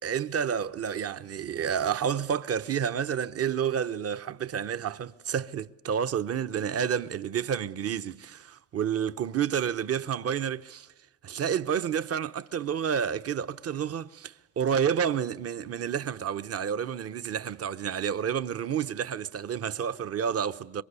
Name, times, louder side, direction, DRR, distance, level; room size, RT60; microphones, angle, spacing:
voice 1, 0.0-10.9 11.2-20.8, right 8 dB, 50° right, 0.9 m, -30 dB
26.5 x 23.0 x 8.3 m
cardioid pair, 90°, 30 cm